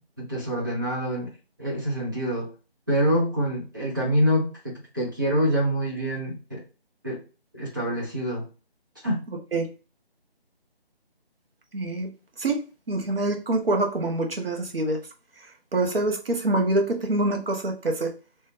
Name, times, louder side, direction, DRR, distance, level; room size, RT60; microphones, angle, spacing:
voice 1, 0.2-1.3 1.6-2.5 2.9-6.6 7.0-7.2 7.5-8.5 9.0-9.2, equal, 20° right, -6 dB, 0.9 m, -26 dB
voice 2, 11.7-12.1 12.4-12.6 12.9-15.0 15.7-18.1, right 2 dB, 65° right, 3 dB, 1.0 m, -25 dB
3.1 x 2.8 x 3.1 m, 0.33 s
figure-of-eight pair, 175°, 31 cm